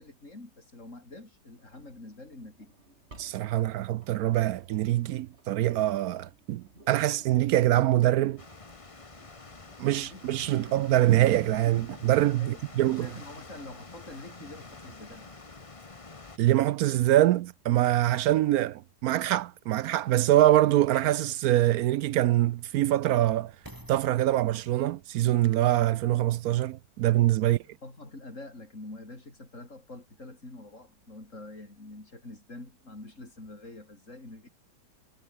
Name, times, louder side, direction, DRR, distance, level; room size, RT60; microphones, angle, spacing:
voice 1, 0.0-2.7 9.9-10.3 10.5-10.7 12.4-15.3 27.4-34.5, left 2 dB, 45° left, 6.1 m, -46 dB
Engine, 1.6-15.7, right 2 dB, 35° right, 4.4 m, -58 dB
voice 2, 3.2-8.4 9.8-13.1 16.4-23.5 23.9-27.6, right 14 dB, 70° right, 0.9 m, -24 dB
sound 1, 8.4-16.4, left 3 dB, 20° left, 1.2 m, -47 dB
sound 2, 23.6-26.7 27.4-27.5, right 1 dB, 10° right, 4.6 m, -54 dB
omnidirectional pair, 1.8 m